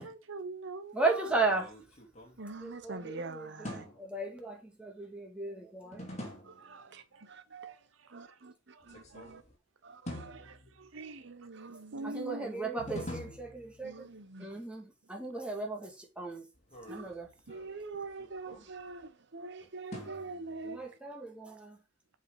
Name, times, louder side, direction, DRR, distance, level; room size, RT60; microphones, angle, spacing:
voice 1, 0.0-1.4 6.6-7.2 7.7-8.4 8.7-8.8 9.1-9.3 10.3-11.3 11.9-12.5, right 2 dB, 85° right, 0.7 m, -43 dB
voice 2, 0.9-1.6 2.6-6.0 12.0-14.1 14.4-16.4 16.9-17.3 20.6-21.8, right 3 dB, 5° right, 2.3 m, -35 dB
sound 1, 1.3-3.0 3.6-4.3 5.9-6.8 8.8-9.6 10.1-11.1 12.8-14.2 16.5-19.1 19.9-20.9, left 1 dB, 35° left, 2.6 m, -46 dB
voice 3, 2.4-3.8 6.4-7.7 8.1-9.4 9.8-10.6 10.9-12.2 13.8-14.5 16.9-17.1 17.5-20.8, right 3 dB, 60° right, 1.2 m, -45 dB
7.9 x 5.0 x 4.8 m
head